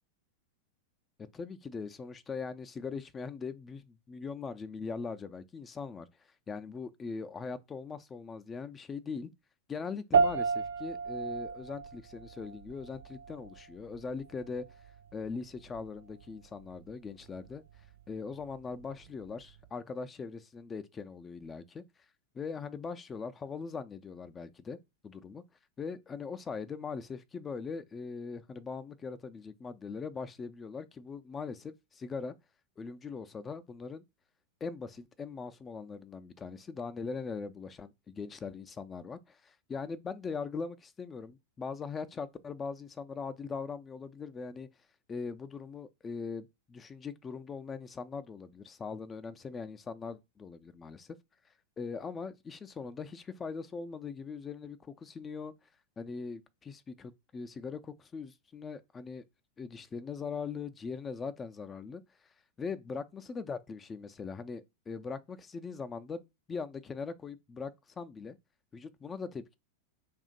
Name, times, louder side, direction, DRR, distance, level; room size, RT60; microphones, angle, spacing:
voice 1, 1.3-6.1 6.5-9.3 9.7-14.6 15.1-17.6 18.1-21.8 22.3-24.8 25.0-25.4 25.8-32.3 32.8-34.0 34.6-44.7 45.1-51.1 51.8-55.5 56.0-59.2 59.6-62.0 62.6-68.4 68.7-69.5, left 5 dB, 20° left, 0.4 m, -41 dB
sound 1, 10.1-19.7, right 5 dB, 60° right, 0.5 m, -35 dB
2.8 x 2.3 x 3.9 m
figure-of-eight pair, 90°, 0 cm